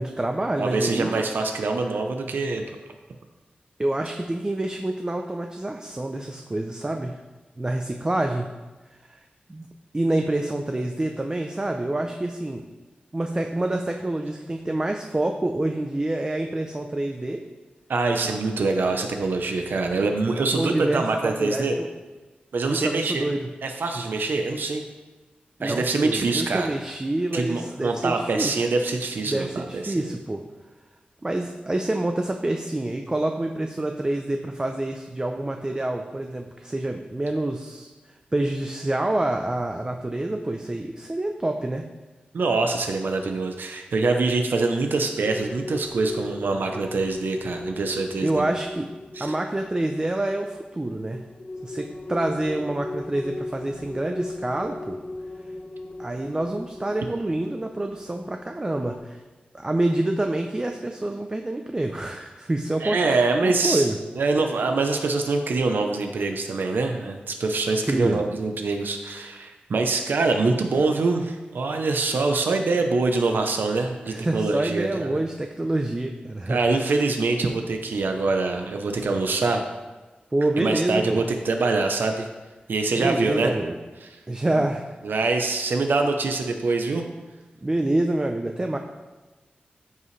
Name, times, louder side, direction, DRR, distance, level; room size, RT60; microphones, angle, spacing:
voice 1, 0.0-1.2 3.8-7.2 7.6-8.5 9.1-9.2 9.5-9.6 9.9-12.6 13.1-17.4 20.5-21.9 22.7-23.5 25.6-28.6 29.2-30.4 31.2-37.9 38.3-41.8 48.2-48.9 49.2-51.2 51.6-55.0 56.0-59.2 59.5-64.0 67.8-68.2 74.1-77.0 80.3-81.2 83.0-83.8 84.3-84.9 87.6-88.8, right 1 dB, 25° right, 4 dB, 0.6 m, -27 dB
voice 2, 0.6-2.6 17.9-21.8 22.5-23.3 23.6-24.8 25.6-26.7 27.3-30.1 42.3-48.5 49.1-49.3 62.8-63.9 64.1-75.2 76.5-79.6 80.6-82.3 82.7-83.5 84.0-84.1 85.0-87.0, right 3 dB, 80° right, 4 dB, 0.8 m, -24 dB
sound 1, 45.2-59.0, left 2 dB, 45° left, 1.2 m, -38 dB
14.0 x 5.6 x 3.2 m, 1.2 s
wide cardioid pair, 85°, 3 cm